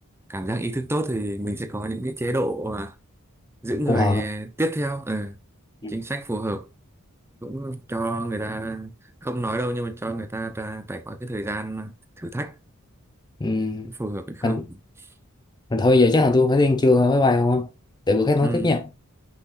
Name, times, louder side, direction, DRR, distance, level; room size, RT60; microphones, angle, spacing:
voice 1, 0.3-2.9 3.6-5.4 5.9-6.7 7.4-8.9 9.2-12.5 13.8-14.6 18.4-18.8, right 1 dB, 10° right, 0.8 m, -29 dB
voice 2, 3.9-4.2 5.8-6.0 13.4-13.9 14.4-14.7 15.7-17.7 18.1-18.9, left 2 dB, 20° left, 0.5 m, -19 dB
6.2 x 6.0 x 2.5 m
head